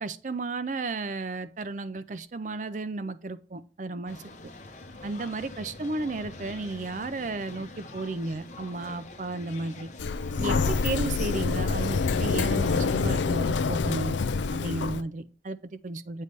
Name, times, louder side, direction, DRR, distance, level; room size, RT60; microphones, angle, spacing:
voice 1, 0.0-4.2 5.0-9.9 10.4-14.2 14.5-16.2, right 3 dB, 45° right, 0.4 m, -33 dB
sound 1, 4.1-13.0, left 2 dB, 40° left, 0.8 m, -44 dB
Sliding door, 10.0-15.0, left 4 dB, 85° left, 0.5 m, -26 dB
8.1 x 3.2 x 5.3 m
head